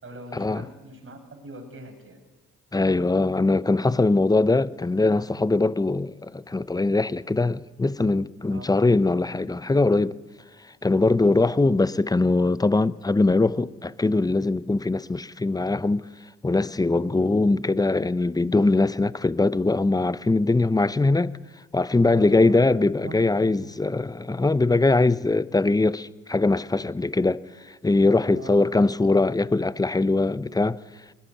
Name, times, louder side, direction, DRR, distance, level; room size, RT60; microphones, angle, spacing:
voice 1, 0.0-2.2 8.5-8.8 11.2-11.7 17.1-17.4 21.9-22.6 23.0-23.7 28.3-28.6, right 2 dB, 40° right, 5.8 m, -42 dB
voice 2, 2.7-10.1 10.8-16.0 16.4-21.3 21.7-27.4 27.8-30.8, left 2 dB, 10° left, 0.8 m, -21 dB
20.5 x 17.5 x 9.3 m
supercardioid pair, 65°, 33 cm